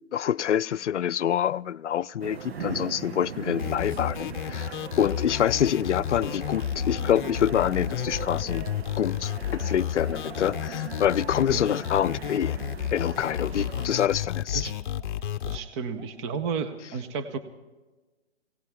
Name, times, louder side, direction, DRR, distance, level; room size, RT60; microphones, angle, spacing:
voice 1, 0.1-8.7 9.0-12.6 12.9-14.7, left 10 dB, 85° left, 0.5 m, -26 dB
sound 1, 2.2-13.9, right 7 dB, 60° right, 0.9 m, -39 dB
sound 2, 3.6-15.6, left 10 dB, 45° left, 0.7 m, -32 dB
sound 3, 5.8-6.1 6.7-11.1 11.3-12.1 12.5-12.8 13.5-15.2 15.5-16.3, right 1 dB, 80° right, 4.4 m, -52 dB
voice 2, 15.4-17.4, right 5 dB, 25° right, 0.9 m, -32 dB
22.0 x 18.0 x 3.6 m
hypercardioid pair, 140°, 34 cm